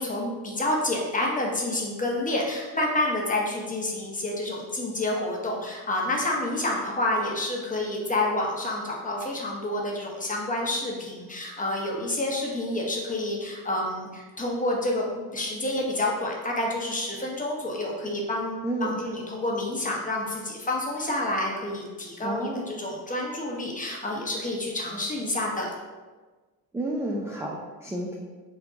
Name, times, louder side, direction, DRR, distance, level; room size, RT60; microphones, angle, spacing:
voice 1, 0.0-25.7, left 1 dB, 20° left, -2 dB, 0.9 m, -29 dB
voice 2, 22.2-22.7 26.7-28.2, right 1 dB, 5° right, -2 dB, 0.4 m, -30 dB
3.5 x 2.2 x 3.9 m, 1.3 s
cardioid pair, 80°, 38 cm